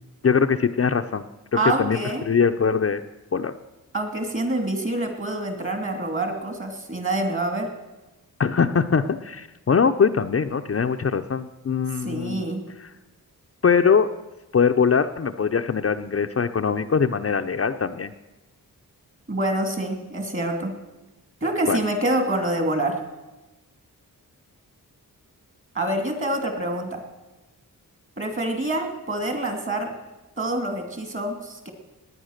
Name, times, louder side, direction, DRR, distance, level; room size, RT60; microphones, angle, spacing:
voice 1, 0.2-1.3 1.8-2.0 2.3-3.0 3.3-3.5 8.4-12.5 13.6-14.1 14.5-18.1 21.7-21.8, left 6 dB, 40° left, 7 dB, 0.6 m, -22 dB
voice 2, 1.5-2.3 3.9-7.7 11.9-12.7 19.3-20.7 21.4-23.0 25.7-27.0 28.2-29.9 30.4-31.7, right 1 dB, 35° right, 6 dB, 2.7 m, -26 dB
19.5 x 9.4 x 6.5 m, 1.1 s
wide cardioid pair, 100°, 35 cm